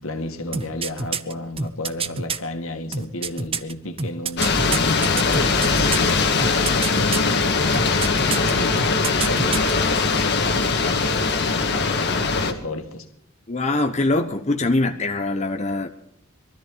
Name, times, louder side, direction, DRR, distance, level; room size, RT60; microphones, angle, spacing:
voice 1, 0.0-13.1, left 2 dB, 80° left, 2.1 m, -32 dB
sound 1, 0.5-2.4 2.9-6.1 6.4-7.3 7.7-8.5 8.8-9.7 10.0-10.1, right 5 dB, 25° right, 0.8 m, -27 dB
sound 2, 4.4-12.5, left 4 dB, 55° left, 1.9 m, -21 dB
voice 2, 13.5-15.9, left 2 dB, 35° left, 1.0 m, -23 dB
23.0 x 13.5 x 4.0 m
head